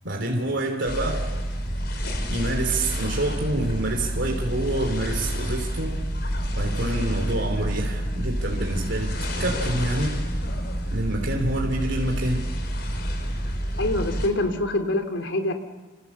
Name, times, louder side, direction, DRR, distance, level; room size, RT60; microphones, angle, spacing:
voice 1, 0.0-1.3 2.3-5.9 6.6-10.1 10.9-12.4, right 1 dB, 70° right, 1 dB, 3.4 m, -27 dB
sound 1, 0.9-14.3, equal, 60° left, 4.3 m, -28 dB
voice 2, 13.8-15.5, left 1 dB, 85° left, 5 dB, 2.7 m, -25 dB
27.5 x 27.5 x 7.3 m, 1.2 s
head